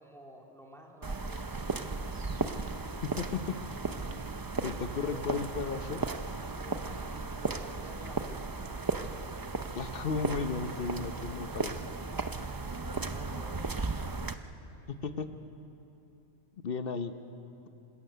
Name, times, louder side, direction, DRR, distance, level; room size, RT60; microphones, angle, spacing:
voice 1, 0.0-2.0 4.1-5.2 6.6-8.4 12.6-13.7, equal, ahead, 0 dB, 1.9 m, -51 dB
sound 1, 1.0-14.3, right 3 dB, 25° right, 0.5 m, -36 dB
voice 2, 3.0-3.6 4.6-6.1 9.7-11.8 14.9-15.4 16.6-17.2, left 5 dB, 55° left, 9 dB, 1.0 m, -34 dB
27.5 x 17.0 x 6.7 m, 2.9 s
omnidirectional pair, 1.2 m